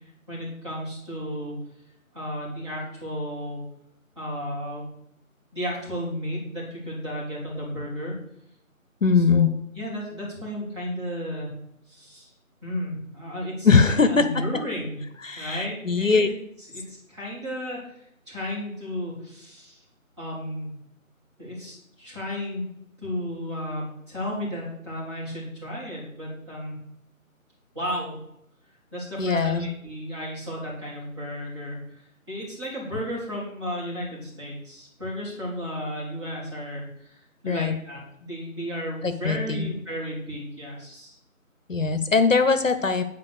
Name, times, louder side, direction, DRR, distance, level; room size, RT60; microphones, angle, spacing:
voice 1, 0.3-1.5 2.1-3.6 4.2-4.9 5.5-8.1 9.2-9.5 9.7-11.5 11.9-12.3 12.6-15.0 15.4-17.8 18.3-19.8 20.2-20.7 21.4-22.6 23.0-26.8 27.7-28.2 28.9-41.2, equal, 20° right, -8 dB, 3.5 m, -33 dB
voice 2, 9.0-9.5 13.6-14.2 15.2-16.3 29.2-29.7 37.5-37.8 39.0-39.7 41.7-43.0, left 4 dB, 65° left, 10 dB, 0.9 m, -21 dB
9.6 x 4.7 x 6.7 m, 0.77 s
figure-of-eight pair, 170°, 42 cm